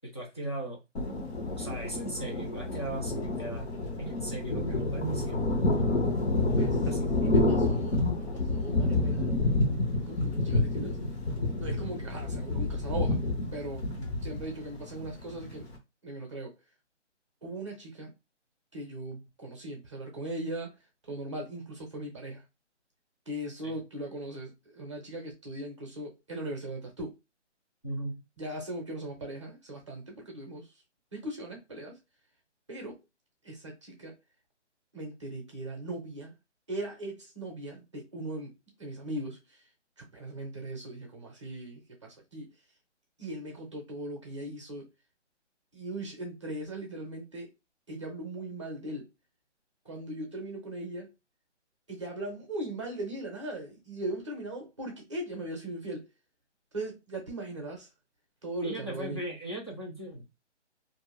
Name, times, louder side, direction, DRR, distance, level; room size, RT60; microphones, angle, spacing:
voice 1, 0.1-0.8 1.5-5.5 6.9-7.2 14.0-14.4 23.6-23.7 27.8-28.2 58.6-60.3, right 1 dB, 25° left, 0.5 m, -38 dB
Thunder, 0.9-15.7, left 2 dB, 60° left, 1.1 m, -29 dB
voice 2, 6.5-6.9 7.2-9.4 10.1-11.0 11.6-13.2 13.5-13.9 14.2-15.7 16.0-16.5 17.4-18.1 18.7-20.8 21.1-22.4 23.3-27.1 28.4-30.7 31.1-32.0 32.7-33.0 33.4-34.2 34.9-36.3 36.7-39.7 40.0-42.5 43.2-44.9 45.7-47.5 47.9-49.1 49.8-51.1 51.9-56.1 56.7-57.9 58.4-59.3, right 1 dB, 25° right, 0.7 m, -39 dB
2.6 x 2.3 x 3.1 m
hypercardioid pair, 170°, 36 cm